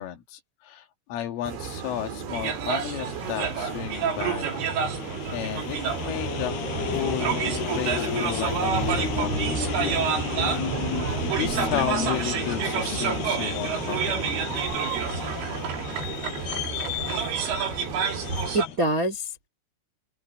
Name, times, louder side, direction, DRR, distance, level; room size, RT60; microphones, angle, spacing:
voice 1, 0.0-4.6 5.0-6.7 6.9-7.5 7.8-10.1 10.5-10.7 11.4-14.2, left 11 dB, 85° left, 4.6 m, -33 dB
sound 1, 1.5-18.6, right 6 dB, 65° right, 5.4 m, -34 dB
sound 2, 2.3-18.7, right 7 dB, 85° right, 6.5 m, -30 dB
sound 3, 2.9-18.8, left 8 dB, 60° left, 5.1 m, -33 dB
voice 2, 18.3-19.5, right 1 dB, 45° right, 1.0 m, -26 dB
open air
omnidirectional pair, 5.6 m